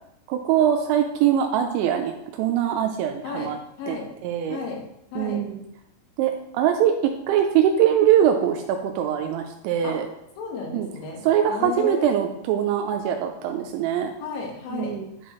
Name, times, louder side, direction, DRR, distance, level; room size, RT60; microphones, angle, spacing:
voice 1, 0.3-3.6 3.9-4.0 4.2-4.6 5.2-5.6 6.2-10.1 10.7-10.9 11.2-14.1 14.7-15.1, right 9 dB, 85° right, 4 dB, 2.8 m, -22 dB
voice 2, 3.2-4.1 4.5-5.5 9.8-10.0 10.4-11.2 11.5-12.2 14.2-15.0, left 4 dB, 80° left, -1 dB, 3.8 m, -33 dB
11.0 x 4.6 x 3.0 m, 0.80 s
omnidirectional pair, 5.5 m